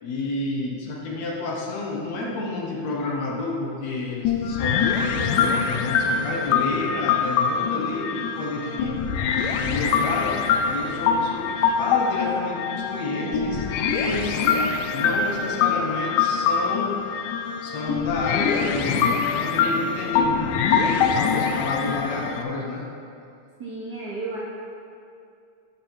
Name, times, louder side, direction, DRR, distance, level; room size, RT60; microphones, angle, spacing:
voice 1, 0.0-9.1 9.6-17.0 17.6-22.9, left 2 dB, 65° left, -2 dB, 1.9 m, -30 dB
sound 1, 4.2-22.4, left 6 dB, 80° left, 2.1 m, -24 dB
voice 2, 13.2-13.6 18.6-18.8 23.6-24.4, right 3 dB, 85° right, -7 dB, 0.8 m, -33 dB
13.5 x 5.1 x 4.5 m, 2.5 s
omnidirectional pair, 3.7 m